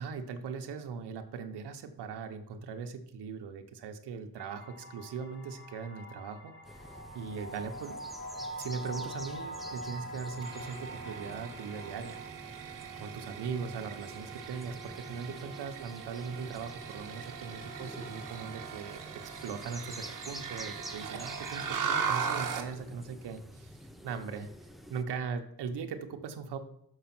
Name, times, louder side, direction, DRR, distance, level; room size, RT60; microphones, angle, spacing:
voice 1, 0.0-6.5 7.1-8.0 8.6-12.2 13.0-23.8 24.0-24.5 24.9-26.6, right 5 dB, 90° right, 5 dB, 1.0 m, -39 dB
sound 1, 4.4-12.3, right 1 dB, 25° left, 1.4 m, -44 dB
sound 2, 6.6-25.0, equal, ahead, 0.4 m, -49 dB
sound 3, 10.4-22.7, right 6 dB, 50° right, 1.1 m, -39 dB
6.6 x 4.7 x 5.9 m, 0.75 s
wide cardioid pair, 140°, 39 cm